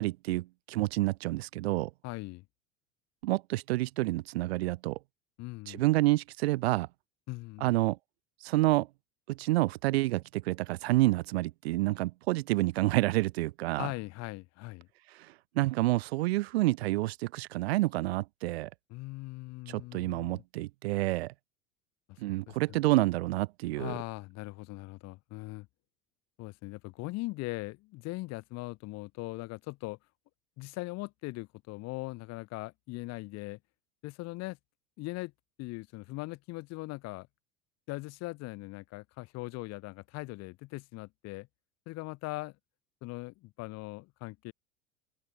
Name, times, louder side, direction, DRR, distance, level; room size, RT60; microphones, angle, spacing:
voice 1, 0.0-1.9 3.2-5.0 5.7-6.9 7.6-8.0 8.4-8.9 9.3-13.9 15.1-18.7 19.7-21.3 22.2-24.0, right 19 dB, 55° right, 0.7 m, -28 dB
voice 2, 2.0-2.4 5.4-5.8 7.3-7.7 13.8-14.9 18.9-20.4 22.1-22.2 22.5-22.8 23.8-25.7 26.4-30.0 30.6-33.6 34.0-34.6 35.0-35.3 35.6-37.3 37.9-41.5 41.9-42.6 43.0-44.5, left 21 dB, 40° left, 2.0 m, -40 dB
open air
figure-of-eight pair, 80°, 39 cm